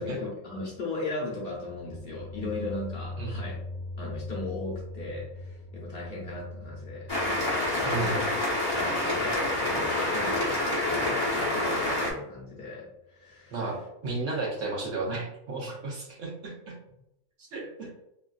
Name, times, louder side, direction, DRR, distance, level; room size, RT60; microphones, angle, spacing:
voice 1, 0.0-3.6 4.0-8.3 8.7-13.7, left 2 dB, 50° left, -5 dB, 0.9 m, -37 dB
sound 1, 1.6-10.5, left 2 dB, 35° right, 1.5 m, -41 dB
sound 2, 7.1-12.1, left 1 dB, 25° left, 0.6 m, -27 dB
voice 2, 7.8-8.2 13.5-13.8 14.0-16.8 17.5-17.9, right 3 dB, 65° right, -3 dB, 1.1 m, -33 dB
3.1 x 2.4 x 2.3 m, 0.82 s
omnidirectional pair, 1.4 m